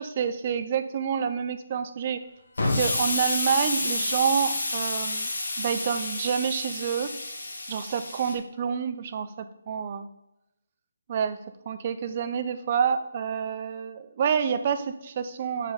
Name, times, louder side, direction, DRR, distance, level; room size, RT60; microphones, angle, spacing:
voice 1, 0.0-2.2 2.7-5.3 5.6-7.1 7.7-10.1 11.1-11.4 11.7-15.7, right 7 dB, 25° right, 10 dB, 0.5 m, -28 dB
Explosion, 2.6-8.3, left 2 dB, 75° left, 2.0 m, -29 dB
7.5 x 5.0 x 5.0 m, 0.87 s
hypercardioid pair, 175°, 0 cm